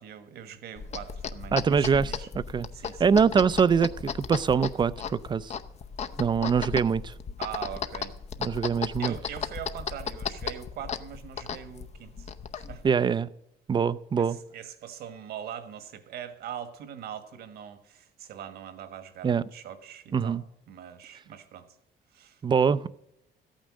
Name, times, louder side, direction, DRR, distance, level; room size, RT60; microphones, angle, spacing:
voice 1, 0.0-2.3 2.7-3.1 7.4-8.1 9.0-12.8 14.2-20.4 20.7-21.7 22.1-22.4, right 9 dB, 70° right, 1.5 m, -42 dB
sound 1, 0.8-12.9, left 6 dB, 40° left, 0.7 m, -36 dB
voice 2, 1.5-2.7 3.0-5.5 6.2-7.1 8.4-9.1 12.8-13.3 13.7-14.4 19.2-19.4 20.1-20.4 22.4-22.9, right 6 dB, 25° right, 0.5 m, -24 dB
14.0 x 9.0 x 6.3 m
cardioid pair, 110°, 17 cm